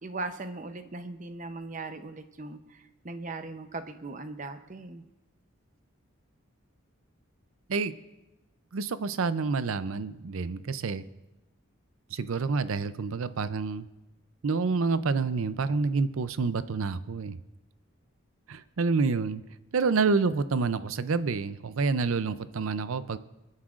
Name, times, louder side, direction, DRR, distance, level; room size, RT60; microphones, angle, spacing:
voice 1, 0.0-5.0, right 3 dB, 35° right, 9 dB, 0.7 m, -39 dB
voice 2, 8.7-11.1 12.1-13.9 14.4-17.4 18.5-19.4 19.7-23.2, right 4 dB, 75° right, 13 dB, 0.5 m, -28 dB
28.5 x 9.7 x 2.5 m, 1.0 s
head